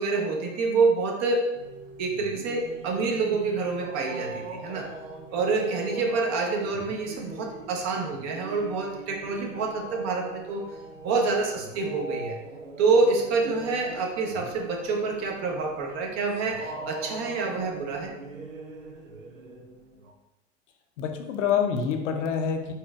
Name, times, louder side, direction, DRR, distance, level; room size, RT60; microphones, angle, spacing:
voice 1, 0.0-1.5 2.0-4.9 5.3-10.7 11.0-12.4 12.8-18.1, right 4 dB, 45° right, 1 dB, 0.9 m, -27 dB
sound 1, 1.5-20.1, right 3 dB, 90° right, 0.7 m, -41 dB
voice 2, 21.0-22.7, left 7 dB, 70° left, 5 dB, 0.8 m, -27 dB
4.4 x 4.1 x 2.4 m, 0.96 s
hypercardioid pair, 90°, 38 cm